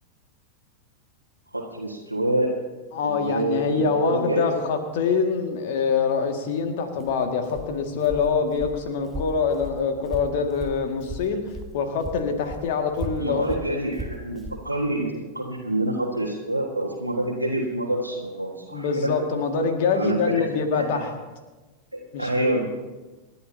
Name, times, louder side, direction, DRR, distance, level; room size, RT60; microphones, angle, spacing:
voice 1, 1.5-2.5 3.0-4.6 13.2-19.1 19.9-20.5 20.7-20.8 21.9-22.6, right 1 dB, 85° right, -4 dB, 1.7 m, -27 dB
voice 2, 2.9-13.5 18.7-21.1 22.1-22.6, left 5 dB, 50° left, 5 dB, 2.1 m, -25 dB
Walk footsteps, 6.9-11.7 12.0-14.6, equal, 10° right, 1.2 m, -36 dB
28.0 x 12.0 x 2.8 m, 1.2 s
figure-of-eight pair, 90°, 0 cm